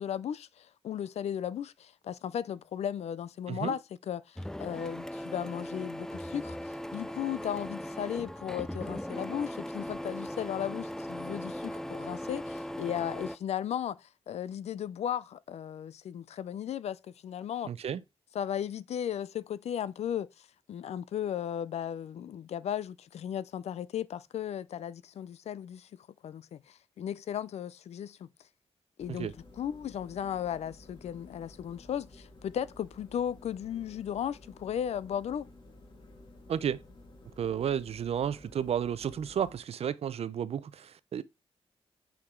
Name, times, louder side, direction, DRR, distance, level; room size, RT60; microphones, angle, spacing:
voice 1, 0.0-17.7 18.3-28.3 29.0-35.5, left 9 dB, 90° left, 0.5 m, -36 dB
Printer, 4.4-13.4, equal, 5° left, 0.3 m, -39 dB
voice 2, 17.6-18.0 29.1-29.3 36.5-36.8 37.4-41.2, right 8 dB, 70° right, 0.6 m, -32 dB
sound 1, 29.0-39.6, left 2 dB, 50° left, 2.4 m, -54 dB
8.7 x 5.0 x 3.8 m
wide cardioid pair, 125°, 11 cm